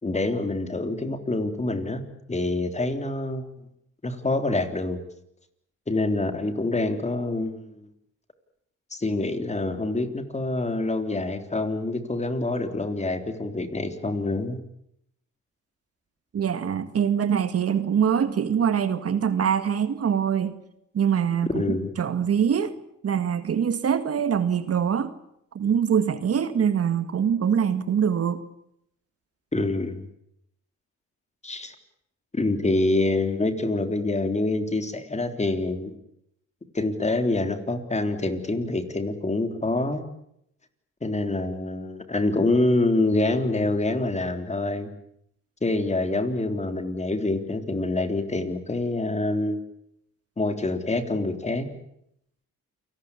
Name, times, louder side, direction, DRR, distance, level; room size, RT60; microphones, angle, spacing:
voice 1, 0.0-2.0 2.3-3.5 4.0-5.0 5.9-7.9 8.9-14.6 21.5-21.9 29.5-30.1 31.4-31.8 32.3-35.9 36.7-40.0 41.0-44.9 45.6-49.6 50.4-51.7, left 2 dB, 20° left, 8 dB, 3.6 m, -26 dB
voice 2, 16.3-20.6 20.9-22.8 23.0-25.1 25.5-28.4, right 8 dB, 50° right, 11 dB, 2.0 m, -24 dB
29.0 x 19.0 x 8.4 m, 0.76 s
cardioid pair, 90°, 30 cm